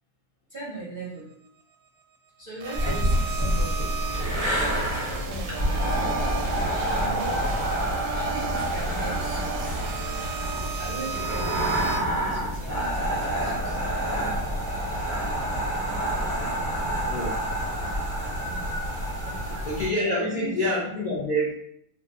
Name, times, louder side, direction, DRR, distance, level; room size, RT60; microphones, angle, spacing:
voice 1, 0.5-1.3 2.4-4.1 4.4-7.5 8.1-9.8 10.8-13.8 16.2-16.5 18.4-18.9 19.2-19.6 19.9-20.7, right 2 dB, 50° right, -8 dB, 0.6 m, -40 dB
sound 1, 2.6-12.0, right 6 dB, 90° right, 1.3 m, -35 dB
sound 2, 2.7-19.9, right 1 dB, 5° left, 0.5 m, -27 dB
voice 2, 17.0-17.4 19.6-21.5, equal, 75° left, -8 dB, 0.4 m, -27 dB
2.8 x 2.3 x 2.8 m, 0.70 s
omnidirectional pair, 1.9 m